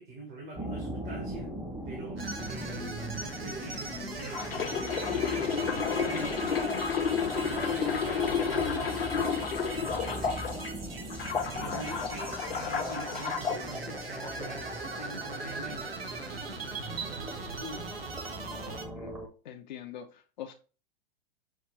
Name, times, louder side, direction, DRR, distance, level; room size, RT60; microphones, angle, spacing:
voice 1, 0.0-1.5 1.8-6.9 7.2-10.6 11.0-17.9, right 2 dB, 55° right, 1.5 m, -44 dB
sound 1, 0.5-19.3, equal, 10° right, 0.8 m, -41 dB
sound 2, 2.2-18.9, right 3 dB, 80° right, 0.9 m, -41 dB
sound 3, 4.2-10.7 11.1-13.6 14.2-14.5, left 6 dB, 75° left, 0.9 m, -31 dB
voice 2, 18.8-19.2 19.4-20.5, left 10 dB, 50° left, 0.5 m, -44 dB
6.3 x 2.4 x 3.3 m
figure-of-eight pair, 100°, 29 cm